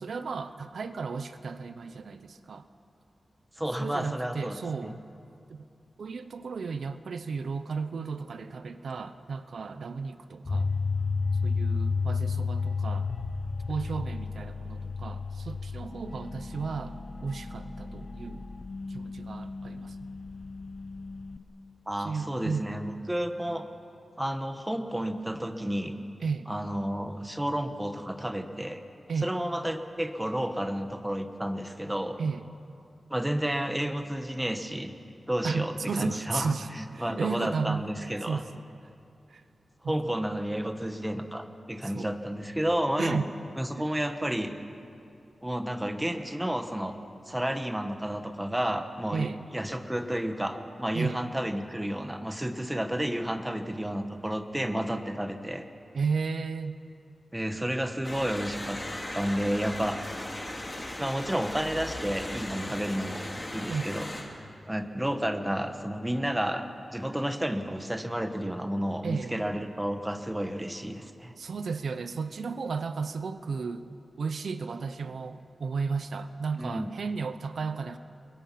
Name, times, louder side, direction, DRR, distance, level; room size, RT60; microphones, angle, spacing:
voice 1, 0.0-2.6 3.8-5.0 5.5-5.7 6.0-10.7 11.4-13.1 13.7-17.0 17.2-18.5 18.9-20.0 22.0-22.7 26.2-26.5 29.1-29.3 32.2-32.4 35.4-37.8 38.2-38.6 39.3-39.4 39.8-40.1 41.8-42.2 43.0-43.3 43.8-43.9 49.1-49.4 50.9-51.2 55.9-56.8 63.7-64.0 69.0-69.4 71.4-78.0, right 5 dB, 75° right, 10 dB, 0.9 m, -34 dB
voice 2, 3.6-4.6 4.8-4.9 21.9-23.7 24.2-25.9 26.5-28.8 29.2-32.2 33.1-34.9 35.3-38.4 39.8-43.2 43.6-44.5 45.4-47.0 47.3-55.6 57.3-58.8 59.1-60.0 61.0-63.2 63.5-64.1 64.7-71.3 76.6-76.9, equal, 5° right, 6 dB, 1.2 m, -31 dB
sound 1, 10.5-21.4, left 4 dB, 40° left, 0.9 m, -32 dB
sound 2, 58.0-64.2, left 1 dB, 20° left, 3.0 m, -37 dB
29.5 x 22.5 x 5.9 m, 2.5 s
wide cardioid pair, 175°, 0 cm